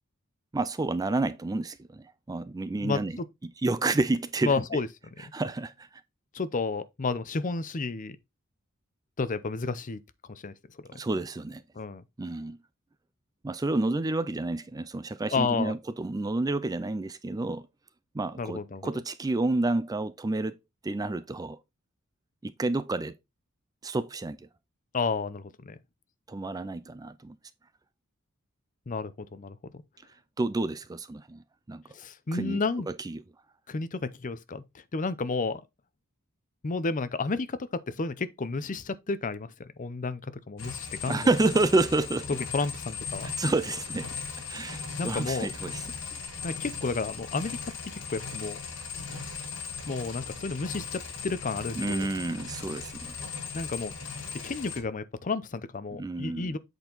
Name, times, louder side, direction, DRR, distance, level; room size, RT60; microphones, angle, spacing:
voice 1, 0.5-4.6 5.2-5.9 10.9-11.6 12.2-12.6 13.4-17.7 18.1-20.6 20.8-21.6 22.4-23.1 23.8-24.5 26.3-27.4 30.4-31.8 32.3-32.6 32.9-33.2 41.1-42.4 43.2-44.1 44.5-45.8 51.8-53.2 55.9-56.6, right 2 dB, 15° right, 0.4 m, -29 dB
voice 2, 4.4-4.9 6.3-8.2 9.2-10.0 10.3-10.5 11.8-12.0 15.3-15.7 18.4-18.9 24.9-25.8 28.9-29.8 31.9-32.9 33.7-34.6 34.9-35.6 36.6-37.6 37.9-39.5 39.8-41.3 42.3-43.3 45.0-45.5 46.4-48.6 49.9-52.1 53.5-53.9 54.4-56.6, left 4 dB, 40° left, 0.6 m, -31 dB
sound 1, 40.6-54.8, left 5 dB, 60° left, 2.4 m, -38 dB
8.0 x 4.5 x 3.9 m
head